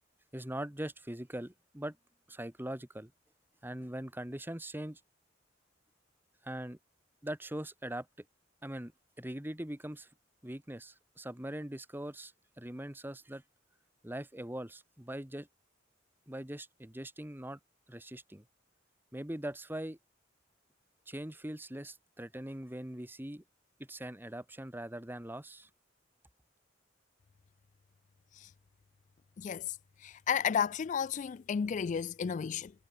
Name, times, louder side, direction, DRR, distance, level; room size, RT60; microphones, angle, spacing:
voice 1, 0.3-2.0 2.3-3.1 3.6-5.0 6.4-6.8 7.2-8.2 8.6-8.9 9.2-10.1 10.4-13.4 14.0-15.5 16.3-17.6 17.9-18.4 19.1-20.0 21.1-23.4 23.8-25.7, right 1 dB, 10° right, 1.4 m, -41 dB
voice 2, 29.4-32.7, left 7 dB, 40° left, 0.3 m, -33 dB
head